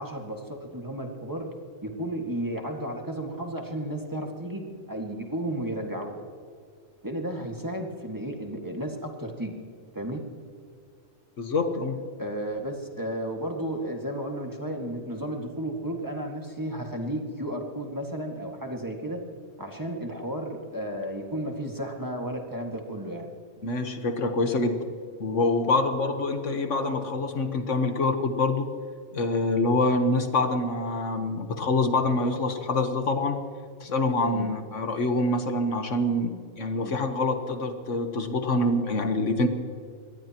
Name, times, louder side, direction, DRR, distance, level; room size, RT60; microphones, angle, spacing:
voice 1, 0.0-1.5 1.8-6.2 7.0-9.6 9.9-10.2 12.2-19.2 19.6-23.3 34.3-34.5 36.8-36.9, right 1 dB, 15° right, 1 dB, 1.9 m, -33 dB
voice 2, 11.4-12.0 23.6-24.8 25.2-28.7 29.1-33.4 33.8-39.5, left 2 dB, 65° left, 6 dB, 1.6 m, -26 dB
24.0 x 18.5 x 3.0 m, 2.2 s
omnidirectional pair, 1.4 m